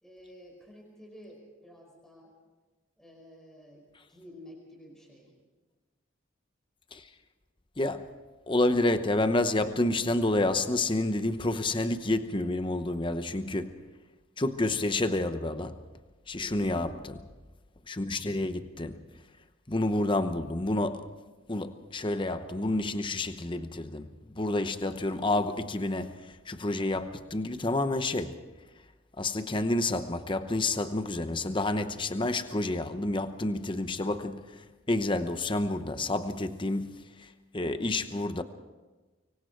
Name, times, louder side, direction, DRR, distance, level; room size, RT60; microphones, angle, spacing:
voice 1, 0.0-2.3 3.0-5.3 16.4-16.8, equal, 5° left, 4.8 m, -51 dB
voice 2, 7.8-8.1 8.5-13.8 14.4-15.8 16.3-17.1 17.9-19.0 19.7-21.1 21.5-28.5 29.2-38.4, left 2 dB, 25° left, 0.9 m, -29 dB
25.0 x 23.5 x 4.6 m
head